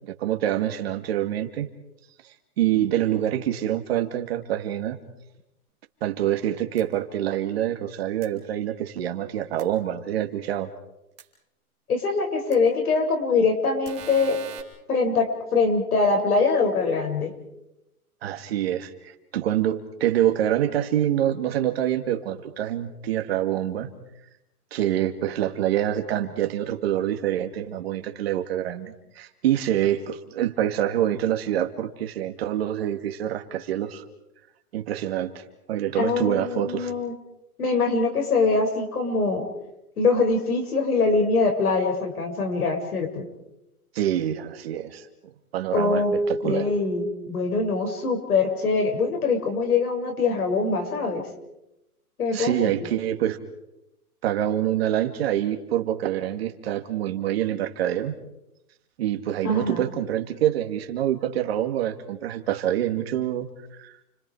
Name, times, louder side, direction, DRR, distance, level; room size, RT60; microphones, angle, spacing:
voice 1, 0.0-1.7 2.6-5.0 6.0-10.7 18.2-23.9 24.7-34.0 34.7-36.9 43.9-45.1 45.5-46.7 52.3-53.4 54.2-58.2 59.0-63.5 63.8-63.9, right 11 dB, 40° right, 6 dB, 2.5 m, -26 dB
sound 1, 6.8-6.9 8.2-8.3 9.6-9.7 11.2-11.3 12.5-12.6 13.8-14.6, right 8 dB, 15° right, 2.8 m, -41 dB
voice 2, 11.9-14.4 14.9-17.3 36.0-37.1 37.6-39.5 40.0-43.3 45.7-46.1 46.4-51.3 52.2-52.7 59.4-59.8, left 4 dB, 75° left, 3 dB, 7.3 m, -23 dB
30.0 x 25.0 x 5.0 m, 0.88 s
hypercardioid pair, 165°, 45 cm